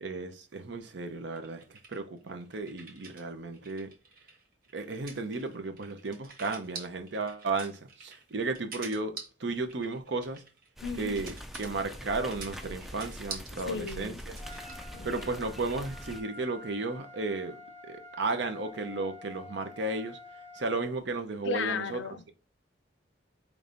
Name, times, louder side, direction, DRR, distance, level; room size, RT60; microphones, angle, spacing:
voice 1, 0.0-1.6 1.9-3.9 4.7-10.4 11.0-14.4 15.0-17.6 17.9-20.2 20.6-22.0, right 3 dB, 75° right, 0.7 m, -34 dB
sound 1, 1.3-3.2 3.5-15.3, right 4 dB, 50° right, 1.1 m, -46 dB
voice 2, 10.8-11.3 13.7-14.2 14.9-15.1 21.4-22.3, left 5 dB, 80° left, 0.4 m, -35 dB
sound 2, 10.8-16.2, equal, ahead, 0.3 m, -43 dB
Trumpet, 14.4-20.9, left 2 dB, 35° left, 0.7 m, -49 dB
5.0 x 3.3 x 2.6 m
head